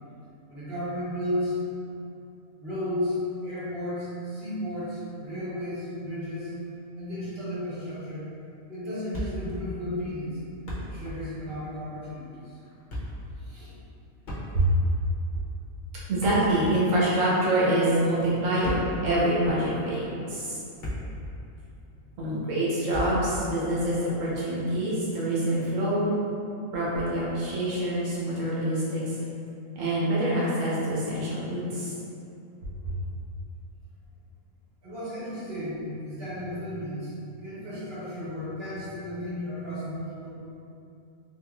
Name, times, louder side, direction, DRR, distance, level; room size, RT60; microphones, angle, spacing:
voice 1, 0.5-1.6 2.6-6.6 6.9-8.3 8.7-10.4 10.8-12.6 13.4-13.7 34.8-37.1 37.4-40.3, left 1 dB, 50° right, -10 dB, 1.1 m, -33 dB
Thump thud, 9.1-9.7 9.9-10.0 10.5-11.2 11.5-11.7 12.6-13.3 14.2-14.9 16.0-17.0 18.4-19.1 19.8-19.9 20.5-21.3 21.5-21.7 22.9-23.4, equal, 45° left, 0.7 m, -35 dB
voice 2, 16.1-20.6 22.2-26.1 26.7-29.0 29.7-31.9, right 1 dB, 75° right, -8 dB, 1.3 m, -26 dB
3.6 x 2.9 x 2.3 m, 2.7 s
omnidirectional pair, 1.4 m